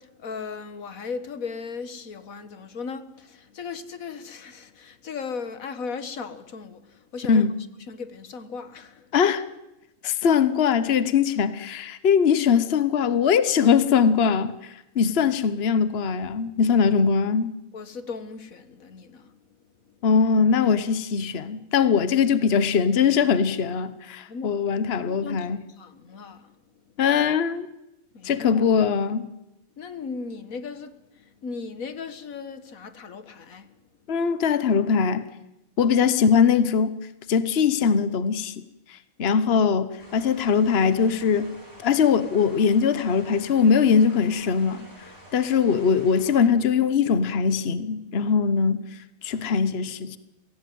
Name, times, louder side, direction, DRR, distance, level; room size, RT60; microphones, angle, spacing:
voice 1, 0.0-7.5 7.9-9.2 17.7-19.6 19.9-20.1 24.3-24.6 25.1-26.9 28.1-28.7 29.8-34.1, left 5 dB, 85° left, 1.9 m, -37 dB
voice 2, 9.1-9.4 10.0-17.5 20.0-25.6 27.0-27.7 28.2-29.3 34.1-35.2 35.8-37.0 37.3-38.6 38.9-41.5 41.8-44.9 45.3-50.2, left 6 dB, 50° left, 1.2 m, -21 dB
sound 1, 40.0-46.4, equal, 15° left, 7.7 m, -48 dB
23.0 x 16.5 x 9.3 m
omnidirectional pair, 1.4 m